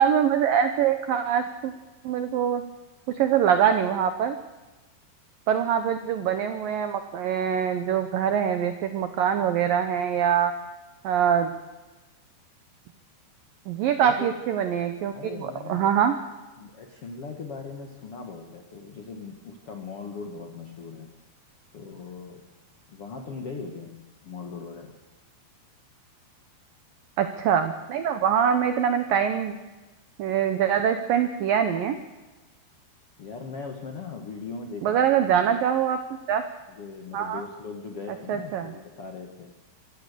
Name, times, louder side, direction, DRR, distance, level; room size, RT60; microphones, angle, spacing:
voice 1, 0.0-1.7 2.0-2.6 3.1-4.4 5.5-10.5 11.0-11.5 13.7-16.2 27.2-29.6 30.2-32.0 34.8-36.0 36.3-36.4 37.1-37.4 38.3-38.7, right 8 dB, 85° right, 8 dB, 2.0 m, -24 dB
voice 2, 14.0-14.4 15.1-15.9 16.6-21.1 21.7-22.5 22.9-25.0 33.2-35.1 36.7-39.5, left 4 dB, 80° left, 3 dB, 1.2 m, -39 dB
25.0 x 16.0 x 6.8 m, 1.1 s
omnidirectional pair, 5.4 m